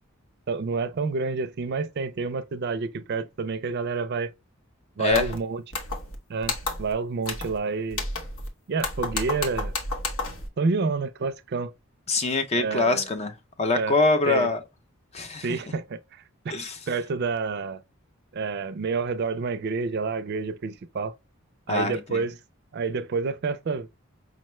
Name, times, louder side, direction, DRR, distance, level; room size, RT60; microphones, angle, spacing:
voice 1, 0.5-4.3 5.0-5.6 6.3-6.5 6.8-8.0 8.7-9.7 10.6-11.7 12.6-13.1 13.7-14.0 14.3-14.5 15.4-16.5 16.9-17.8 18.3-21.1 21.7-22.3 22.7-23.9, right 4 dB, 50° right, 0.4 m, -28 dB
voice 2, 5.0-5.3 12.1-14.6 15.1-15.5 16.5-16.8 21.7-22.2, left 3 dB, 30° left, 0.5 m, -24 dB
sound 1, 5.1-5.4 5.7-6.2 6.4-6.9 7.2-7.6 7.9-8.5 8.8-10.5, left 3 dB, 75° left, 1.0 m, -31 dB
5.1 x 2.1 x 3.0 m
head